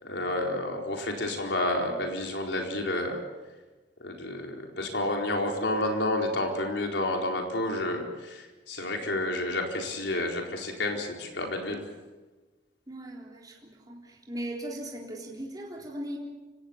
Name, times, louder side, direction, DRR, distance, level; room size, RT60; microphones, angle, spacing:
voice 1, 0.0-3.2 4.0-11.8, left 1 dB, 75° left, 2 dB, 4.5 m, -30 dB
voice 2, 12.9-16.2, right 1 dB, 20° right, -2 dB, 3.8 m, -38 dB
29.5 x 17.5 x 7.3 m, 1.2 s
head